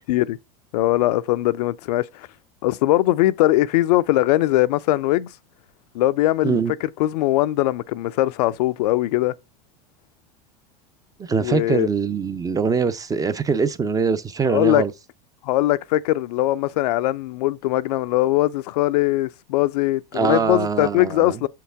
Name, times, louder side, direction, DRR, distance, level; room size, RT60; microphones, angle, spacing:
voice 1, 0.7-2.3 2.6-5.3 5.9-9.3 11.4-11.9 14.5-14.8 15.4-21.5, left 16 dB, 75° left, 0.4 m, -21 dB
voice 2, 11.2-14.9 20.1-21.4, right 5 dB, 15° right, 0.4 m, -23 dB
6.3 x 4.6 x 3.4 m
hypercardioid pair, 105°, 21 cm